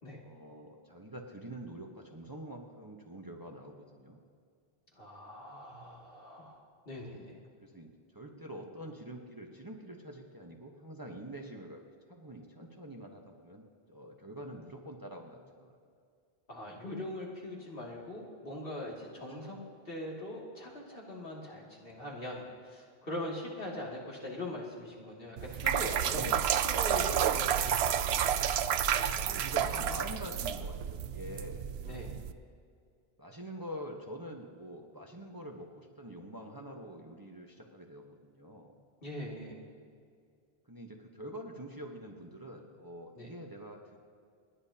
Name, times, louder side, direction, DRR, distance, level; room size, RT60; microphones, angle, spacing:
voice 1, 0.2-4.2 7.1-7.2 7.6-11.8 12.1-15.7 19.4-19.6 26.1-26.9 29.2-32.0 33.2-38.8 40.7-44.0, right 1 dB, 20° right, 1 dB, 1.1 m, -46 dB
voice 2, 4.9-6.6 6.9-7.4 16.5-19.6 19.8-26.3 26.6-28.3 28.9-29.5 29.9-30.0 31.8-32.1 39.0-39.6 43.1-43.3, left 1 dB, 65° left, -4 dB, 2.8 m, -42 dB
sound 1, 25.4-32.3, right 9 dB, 85° right, 0.8 m, -30 dB
29.0 x 10.5 x 2.9 m, 2.3 s
omnidirectional pair, 1.0 m